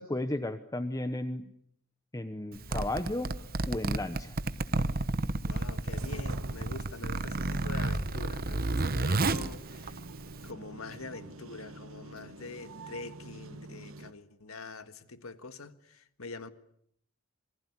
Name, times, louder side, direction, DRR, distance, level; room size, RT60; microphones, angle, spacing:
voice 1, 0.0-1.5 2.1-3.3 3.6-4.3, left 1 dB, 15° left, 1.0 m, -34 dB
Zipper (clothing), 2.5-10.5, right 2 dB, 45° right, 1.1 m, -31 dB
voice 2, 5.4-10.0 10.4-16.5, left 3 dB, 75° left, 1.7 m, -45 dB
sound 1, 5.9-14.1, right 2 dB, 65° right, 1.3 m, -48 dB
27.5 x 19.5 x 9.7 m
head